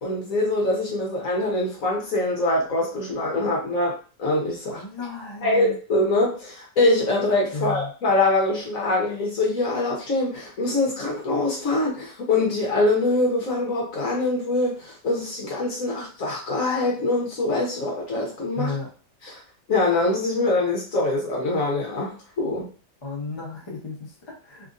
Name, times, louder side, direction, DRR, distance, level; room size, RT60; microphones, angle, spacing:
voice 1, 0.0-3.9 4.2-4.8 5.4-18.7 19.3-19.4 19.7-22.7, left 2 dB, 55° left, -2 dB, 1.2 m, -24 dB
voice 2, 4.6-5.8 7.5-7.9 18.5-18.9 23.0-24.7, left 3 dB, 20° left, -5 dB, 0.7 m, -33 dB
3.5 x 2.6 x 2.5 m, 0.37 s
omnidirectional pair, 1.8 m